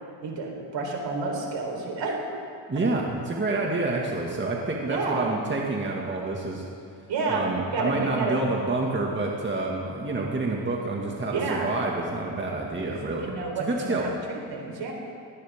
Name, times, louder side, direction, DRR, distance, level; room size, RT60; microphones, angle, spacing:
voice 1, 0.2-2.2 4.9-5.3 7.1-8.4 11.3-11.8 12.8-14.9, right 3 dB, 65° right, 0 dB, 4.3 m, -30 dB
voice 2, 2.7-6.6 7.3-13.3 13.6-14.1, right 2 dB, 25° right, -2 dB, 2.1 m, -28 dB
19.0 x 17.5 x 3.7 m, 2.4 s
cardioid pair, 80°, 48 cm